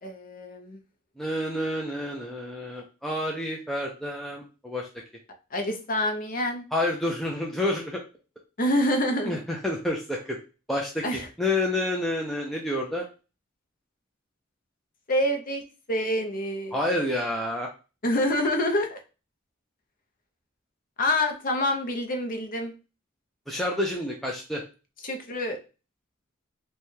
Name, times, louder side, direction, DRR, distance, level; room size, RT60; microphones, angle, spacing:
voice 1, 0.0-0.8 5.5-6.6 8.6-9.4 11.0-11.3 15.1-15.6 15.9-16.8 18.0-19.0 21.0-22.7 25.0-25.6, left 1 dB, 40° left, 5 dB, 0.7 m, -26 dB
voice 2, 1.2-4.9 6.7-8.0 9.2-10.4 10.7-13.0 16.7-17.7 23.5-24.6, left 1 dB, ahead, -2 dB, 0.4 m, -29 dB
3.3 x 2.3 x 4.3 m, 0.33 s
head